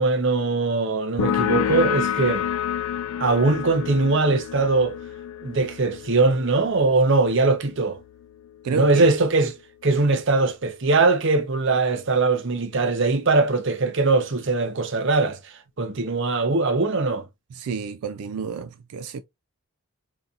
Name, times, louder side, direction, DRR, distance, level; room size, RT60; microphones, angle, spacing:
voice 1, 0.0-2.5 3.2-5.0 5.4-8.0 8.7-9.6 9.8-15.4 15.8-17.3, right 3 dB, 55° right, 0.6 m, -21 dB
sound 1, 1.2-8.5, left 9 dB, 80° left, 0.4 m, -29 dB
voice 2, 8.6-9.1 17.5-19.2, right 5 dB, 85° right, 0.4 m, -30 dB
3.9 x 2.8 x 2.4 m
head